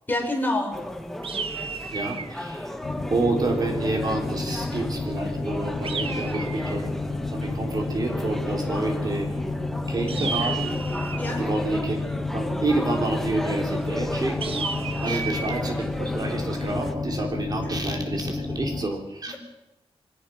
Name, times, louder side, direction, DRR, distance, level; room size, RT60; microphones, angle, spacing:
voice 1, 0.1-0.8 11.2-11.4 15.0-15.3 17.6-17.7 19.3-19.4, left 1 dB, 20° left, 2 dB, 4.3 m, -28 dB
sound 1, 0.7-16.9, left 1 dB, 5° left, 1.4 m, -35 dB
sound 2, 1.2-2.4 5.8-6.9 10.1-11.3 14.4-15.6, right 5 dB, 65° right, 1.2 m, -32 dB
voice 2, 1.9-2.7 3.1-9.3 9.9-10.8 11.3-14.6 15.0-19.4, right 2 dB, 40° right, 2 dB, 3.3 m, -29 dB
sound 3, 2.8-18.8, left 3 dB, 45° left, 5.8 m, -31 dB
23.5 x 18.5 x 6.2 m, 0.96 s
wide cardioid pair, 150°, 10 cm